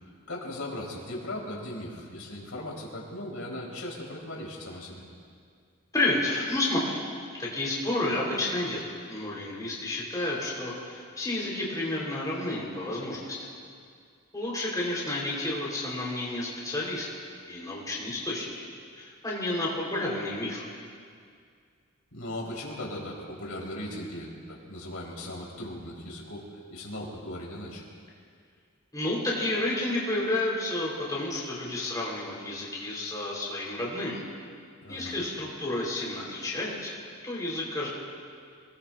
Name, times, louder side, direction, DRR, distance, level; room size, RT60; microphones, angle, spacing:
voice 1, 0.3-5.0 22.1-27.8 34.8-35.2, left 1 dB, 90° left, -3 dB, 4.2 m, -38 dB
voice 2, 5.9-7.0 7.4-13.5 14.3-17.1 17.4-18.5 18.9-20.7 28.9-34.2 34.9-37.0 37.2-37.9, left 2 dB, 15° left, -5 dB, 4.1 m, -31 dB
27.0 x 20.0 x 2.6 m, 2.2 s
head